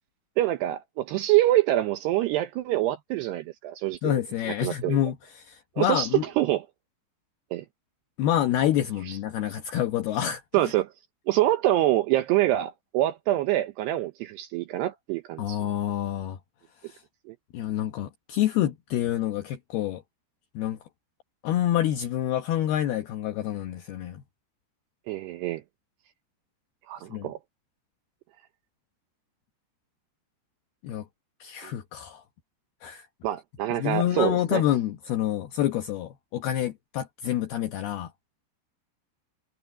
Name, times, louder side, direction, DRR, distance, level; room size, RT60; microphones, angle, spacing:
voice 1, 0.4-4.2 4.6-5.0 5.8-6.1 6.4-6.6 7.5-7.7 9.1-9.2 10.5-10.9 11.3-15.6 17.3-17.4 25.1-25.6 26.9-27.4 31.6-31.7 33.2-34.6, right 14 dB, 75° right, 2.8 m, -25 dB
voice 2, 4.0-6.2 8.2-10.7 15.4-16.4 16.8-17.0 17.5-20.0 20.5-20.8 21.4-24.2 27.1-27.3 30.8-31.1 31.4-32.2 32.8-33.1 33.7-38.1, left 11 dB, 70° left, 2.8 m, -27 dB
omnidirectional pair, 5.2 m